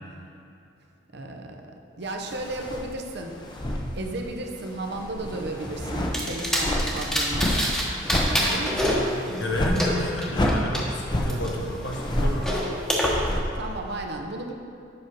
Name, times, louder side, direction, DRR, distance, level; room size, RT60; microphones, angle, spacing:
voice 1, 1.1-3.4 3.9-7.9 8.3-9.3 13.5-14.5, right 2 dB, 60° right, 2 dB, 0.8 m, -34 dB
sound 1, 2.2-4.4 4.7-13.8, left 1 dB, 25° left, 0.8 m, -29 dB
sound 2, 6.1-7.8 8.1-10.8 11.3-13.1, equal, 5° left, 1.1 m, -27 dB
voice 2, 9.3-12.7, equal, 75° left, -1 dB, 1.3 m, -31 dB
7.9 x 5.6 x 5.2 m, 2.6 s
head